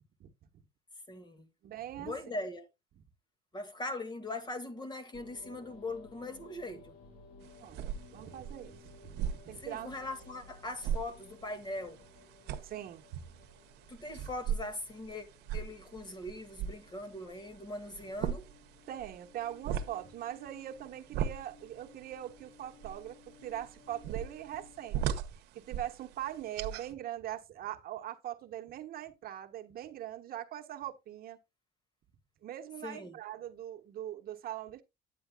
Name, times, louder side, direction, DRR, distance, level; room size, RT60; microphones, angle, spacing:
voice 1, 1.1-1.5 2.0-2.7 3.5-7.0 9.6-12.0 13.9-15.3 15.5-18.5 32.8-33.2, left 2 dB, 25° left, 2.0 m, -40 dB
voice 2, 1.6-2.2 7.6-8.8 9.0-9.2 9.4-9.9 12.6-13.0 18.9-25.2 25.5-31.4 32.4-34.8, right 12 dB, 60° right, 1.3 m, -42 dB
sound 1, 5.1-24.9, left 3 dB, 65° left, 2.8 m, -58 dB
sound 2, 7.4-26.9, right 9 dB, 90° right, 1.0 m, -40 dB
9.3 x 9.3 x 2.3 m
cardioid pair, 110°, 17 cm